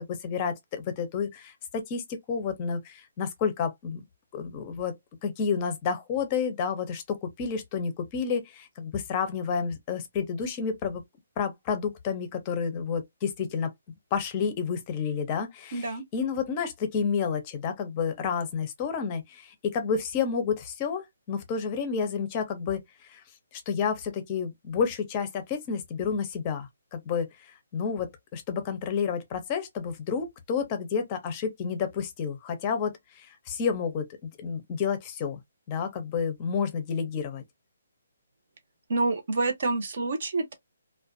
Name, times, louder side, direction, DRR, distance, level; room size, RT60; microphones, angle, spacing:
voice 1, 0.0-4.0 4.3-5.0 5.2-11.0 11.4-13.7 14.1-23.2 23.5-27.3 27.7-35.4 35.7-37.4, left 6 dB, 20° left, 0.6 m, -30 dB
voice 2, 15.7-16.0 38.9-40.5, right 3 dB, 50° right, 0.7 m, -27 dB
2.4 x 2.1 x 2.5 m
hypercardioid pair, 170°, 0 cm